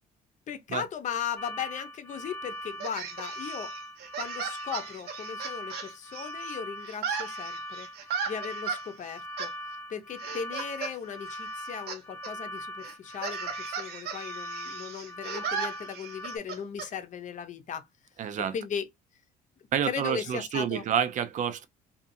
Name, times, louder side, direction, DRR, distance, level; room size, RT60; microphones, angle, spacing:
voice 1, 0.5-3.7 4.2-7.9 8.3-9.5 9.9-17.9 18.5-18.9 19.8-20.8, left 7 dB, 45° left, 0.7 m, -37 dB
sound 1, 1.4-16.4, equal, 10° left, 0.5 m, -41 dB
sound 2, 2.8-6.6 6.8-8.8 9.4-9.5 10.2-10.9 11.2-12.0 12.2-12.3 12.8-16.9, right 6 dB, 75° right, 0.9 m, -36 dB
voice 2, 18.2-18.5 19.7-21.7, right 8 dB, 50° right, 0.5 m, -28 dB
2.6 x 2.4 x 2.6 m
cardioid pair, 110°, 17 cm